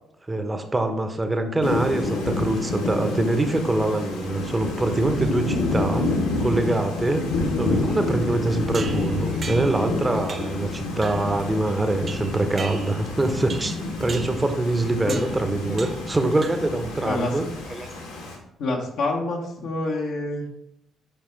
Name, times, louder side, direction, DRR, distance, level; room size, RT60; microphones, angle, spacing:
voice 1, 0.3-6.1 6.4-7.3 7.6-17.9, right 2 dB, 25° right, 6 dB, 1.0 m, -24 dB
Thunder / Rain, 1.6-18.4, left 2 dB, 85° left, 1.4 m, -28 dB
sound 1, 8.7-9.9 10.3-10.6 11.0-11.4 12.1-13.1 13.5-13.8 14.1-14.4 15.1-15.4 15.8-16.1 16.4-16.8, right 5 dB, 45° right, 0.5 m, -37 dB
voice 2, 17.0-17.4 18.6-20.5, left 2 dB, 65° left, -1 dB, 1.1 m, -27 dB
8.9 x 5.3 x 3.4 m, 0.82 s
hypercardioid pair, 45°, 0 cm